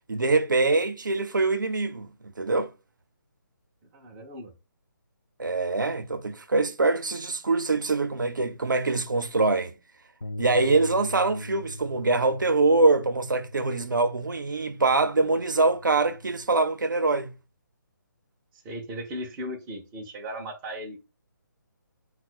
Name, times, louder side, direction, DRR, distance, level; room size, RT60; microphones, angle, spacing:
voice 1, 0.1-2.1 2.4-2.7 5.4-9.7 10.4-17.3, right 3 dB, 65° right, 0.6 m, -24 dB
voice 2, 3.9-4.5 18.5-21.1, equal, 10° right, 0.3 m, -37 dB
Bass guitar, 10.2-16.5, left 1 dB, 85° left, 0.4 m, -41 dB
3.6 x 2.1 x 4.2 m
figure-of-eight pair, 145°, 11 cm